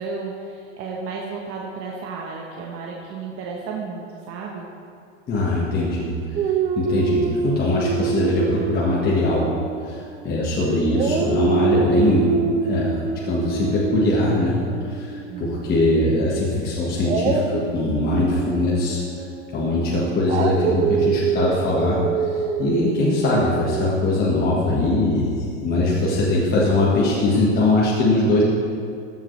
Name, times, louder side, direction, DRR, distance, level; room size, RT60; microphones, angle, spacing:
voice 1, 0.0-4.7 15.3-15.6, right 4 dB, 40° right, -2 dB, 1.1 m, -33 dB
voice 2, 5.3-6.1 6.4-9.5 9.8-12.4 12.6-13.0 13.3-14.6 14.9-19.0 19.5-22.0 22.3-28.4, left 2 dB, 25° left, -6 dB, 1.5 m, -21 dB
Dog, 6.4-10.5 10.9-15.9 17.0-24.0, right 6 dB, 20° right, 0.3 m, -26 dB
14.5 x 7.3 x 3.2 m, 2.4 s
supercardioid pair, 135°, 37 cm